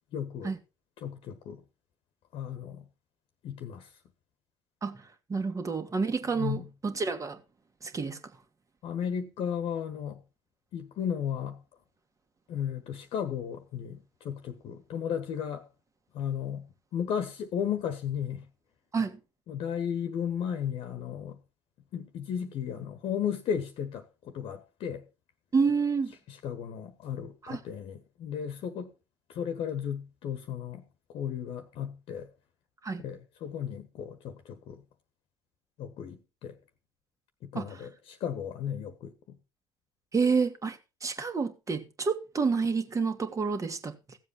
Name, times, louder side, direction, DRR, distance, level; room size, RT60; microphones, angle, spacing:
voice 1, 0.1-0.5 1.0-1.6 2.3-2.8 3.4-3.8 6.4-6.7 8.8-10.2 10.7-11.6 12.5-15.6 16.1-16.6 16.9-18.4 19.5-21.4 21.9-25.0 26.3-28.9 29.3-30.8 31.1-32.3 33.0-34.8 35.8-36.5 37.4-39.1, left 8 dB, 55° left, 1.4 m, -34 dB
voice 2, 4.8-7.4 7.8-8.2 18.9-19.2 25.5-26.1 27.4-27.6 32.8-33.0 37.5-37.9 40.1-44.2, right 5 dB, 30° right, 1.9 m, -29 dB
16.0 x 7.6 x 4.3 m
hypercardioid pair, 60°, 11 cm